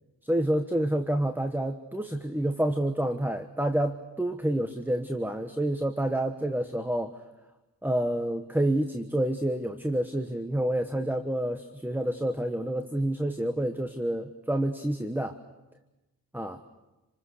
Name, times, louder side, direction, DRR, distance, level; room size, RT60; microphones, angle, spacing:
voice 1, 0.2-7.1 7.8-15.4 16.3-16.6, right 1 dB, 5° right, 7 dB, 1.2 m, -28 dB
27.5 x 26.5 x 6.6 m, 1.1 s
wide cardioid pair, 75°, 41 cm